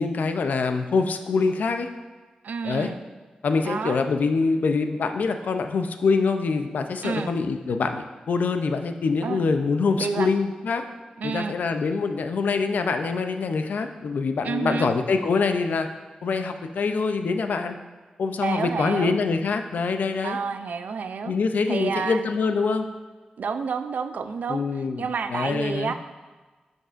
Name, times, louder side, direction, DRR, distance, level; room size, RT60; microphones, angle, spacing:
voice 1, 0.0-1.9 2.6-2.9 3.4-10.8 11.2-15.9 16.2-17.7 18.2-20.4 21.3-22.9 24.5-25.0 25.3-25.9, left 4 dB, 80° left, 7 dB, 0.5 m, -25 dB
voice 2, 2.4-3.0 3.6-4.0 7.0-7.3 9.2-9.4 10.0-10.3 11.2-11.6 14.4-14.9 18.4-19.2 20.2-21.3 21.7-22.3 23.4-25.9, right 5 dB, 80° right, 9 dB, 0.4 m, -29 dB
12.0 x 5.3 x 2.5 m, 1.3 s
wide cardioid pair, 170°, 3 cm